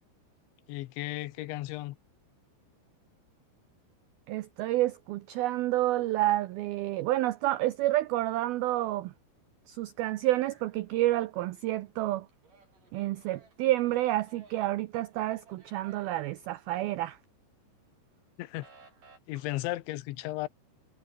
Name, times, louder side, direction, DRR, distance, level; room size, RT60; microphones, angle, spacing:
voice 1, 0.7-2.0 18.4-18.7 19.3-20.5, left 17 dB, 80° left, 3.3 m, -35 dB
voice 2, 4.3-9.1 9.7-12.3 12.9-17.2, right 16 dB, 90° right, 2.1 m, -29 dB
sound 1, 10.4-11.5 11.8-17.3 17.6-19.2, right 4 dB, 45° right, 8.0 m, -59 dB
omnidirectional pair, 5.4 m